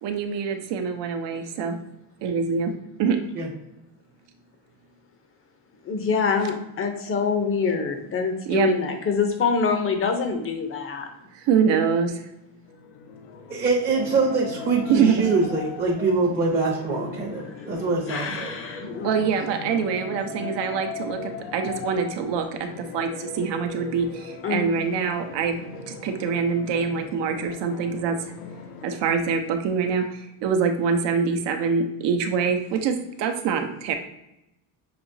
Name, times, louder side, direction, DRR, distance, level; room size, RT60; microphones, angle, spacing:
voice 1, 0.0-1.8 2.2-3.2 8.5-8.7 11.3-12.2 14.9-15.3 19.0-25.6 25.9-28.2 28.8-33.9, right 6 dB, 60° right, 6 dB, 0.8 m, -25 dB
voice 2, 5.9-11.1 18.1-19.1 24.4-24.7, left 5 dB, 30° left, 5 dB, 0.6 m, -25 dB
sound 1, 12.7-29.0, left 6 dB, 70° left, 0.7 m, -38 dB
voice 3, 13.5-18.5, right 3 dB, 20° right, -4 dB, 0.7 m, -24 dB
6.0 x 2.9 x 2.6 m, 0.87 s
cardioid pair, 140°, 48 cm